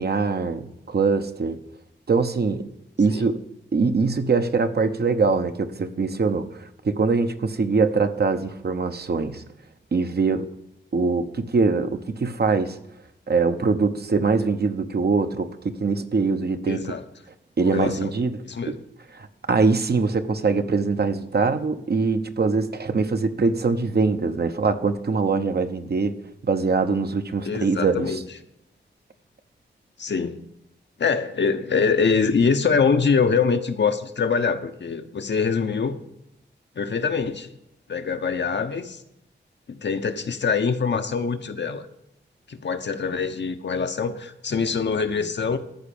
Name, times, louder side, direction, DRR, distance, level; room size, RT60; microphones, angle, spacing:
voice 1, 0.0-1.6 2.1-2.7 3.0-3.4 3.7-9.4 9.9-10.5 10.9-12.8 13.3-17.0 17.6-18.4 18.7-18.8 19.1-26.2 26.4-28.2, right 4 dB, 55° right, 8 dB, 1.0 m, -23 dB
voice 2, 16.7-17.0 17.6-18.1 18.4-18.8 27.4-28.2 30.0-30.4 31.0-36.0 36.8-37.5 37.9-39.0 39.7-41.9 42.5-45.6, left 5 dB, 70° left, 8 dB, 1.0 m, -24 dB
13.5 x 5.1 x 8.6 m, 0.85 s
wide cardioid pair, 90°, 19 cm